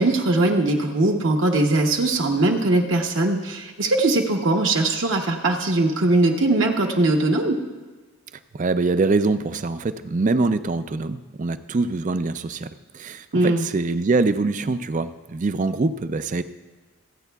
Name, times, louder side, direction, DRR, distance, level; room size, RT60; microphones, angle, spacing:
voice 1, 0.0-7.6 13.3-13.7, right 2 dB, 55° right, 1 dB, 0.9 m, -20 dB
voice 2, 8.5-16.4, right 3 dB, 35° right, 12 dB, 0.4 m, -24 dB
27.0 x 9.1 x 2.3 m, 1.3 s
head